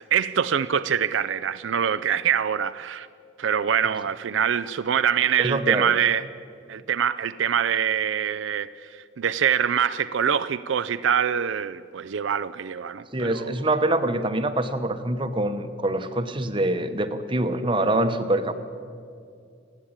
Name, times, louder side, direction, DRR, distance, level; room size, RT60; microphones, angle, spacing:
voice 1, 0.0-3.1 3.4-6.3 6.7-13.5, right 8 dB, 70° right, 0.4 m, -24 dB
voice 2, 5.4-5.9 13.1-18.5, right 1 dB, 25° right, 1.0 m, -25 dB
29.0 x 10.0 x 8.8 m
head